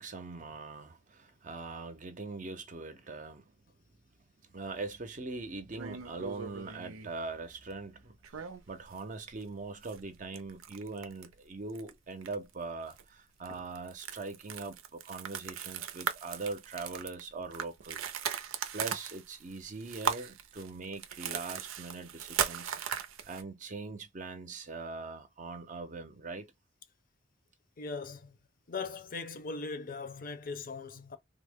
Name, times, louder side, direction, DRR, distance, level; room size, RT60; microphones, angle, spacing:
voice 1, 0.0-3.5 4.5-18.1 18.7-22.8 23.3-26.5, right 3 dB, 40° right, 0.6 m, -42 dB
sound 1, 5.7-7.1 8.2-9.0 9.3-9.4 9.8-11.4 11.7-11.9 12.2-12.5 12.9-13.0 13.4-23.4, right 8 dB, 90° right, 0.5 m, -38 dB
voice 2, 27.8-28.4 28.7-31.2, left 4 dB, 45° left, 0.6 m, -40 dB
3.5 x 2.1 x 3.4 m
head